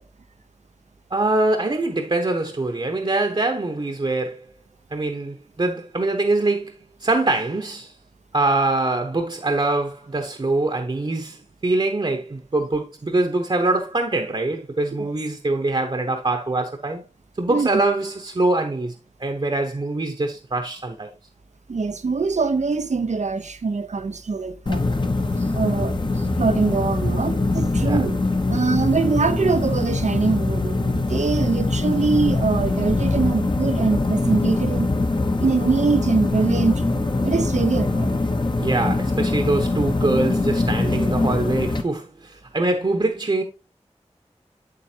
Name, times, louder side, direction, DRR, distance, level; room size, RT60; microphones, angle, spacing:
voice 1, 1.1-4.4 4.9-7.9 8.3-17.0 17.4-18.9 19.2-21.1 27.8-28.0 38.6-43.4, right 2 dB, 45° right, 1.0 m, -23 dB
voice 2, 21.7-24.8 25.5-34.9 35.4-38.2, right 4 dB, 90° right, 0.8 m, -23 dB
sound 1, 24.7-41.8, left 2 dB, 40° left, 0.9 m, -23 dB
8.1 x 7.6 x 2.8 m
wide cardioid pair, 65°, 12 cm